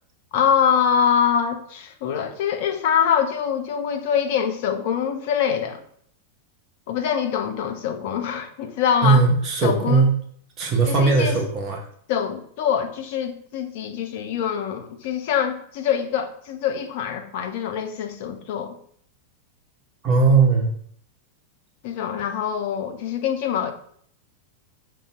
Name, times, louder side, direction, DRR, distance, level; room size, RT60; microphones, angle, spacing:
voice 1, 0.3-5.8 6.9-9.2 9.6-10.0 10.9-11.4 12.1-18.7 21.8-23.7, left 8 dB, 50° left, 5 dB, 0.4 m, -24 dB
voice 2, 9.0-10.1 10.6-11.8 20.0-20.7, right 4 dB, 35° right, 1 dB, 0.5 m, -18 dB
5.0 x 2.0 x 2.4 m, 0.63 s
figure-of-eight pair, 90°, 0 cm